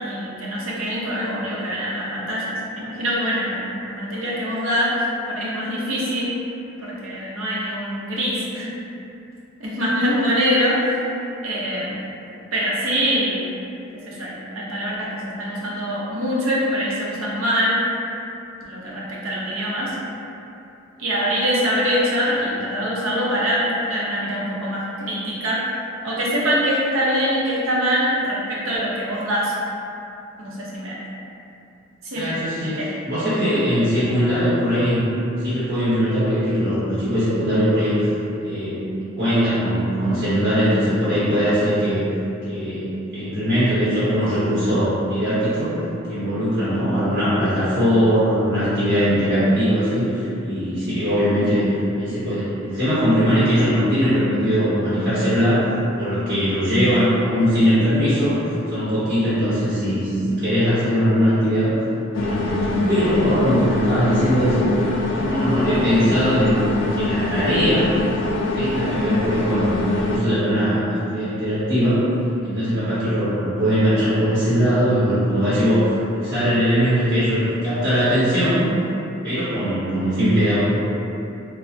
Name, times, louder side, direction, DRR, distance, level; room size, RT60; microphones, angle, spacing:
voice 1, 0.0-6.3 6.8-8.7 9.6-11.0 11.4-12.0 12.5-13.4 13.9-17.8 18.6-19.9 21.0-25.6 26.0-29.5 30.4-31.0 32.0-32.9, equal, 85° right, -5 dB, 0.6 m, -24 dB
voice 2, 32.1-35.1 35.4-38.1 38.4-38.8 39.2-42.0 42.5-45.8 46.1-51.6 51.9-61.7 62.1-66.6 66.9-67.9 68.5-72.0 72.4-78.7 79.2-80.6, equal, 55° right, -13 dB, 0.8 m, -20 dB
sound 1, 62.1-70.2, left 2 dB, 60° left, 0.3 m, -24 dB
3.2 x 2.0 x 2.6 m, 2.7 s
head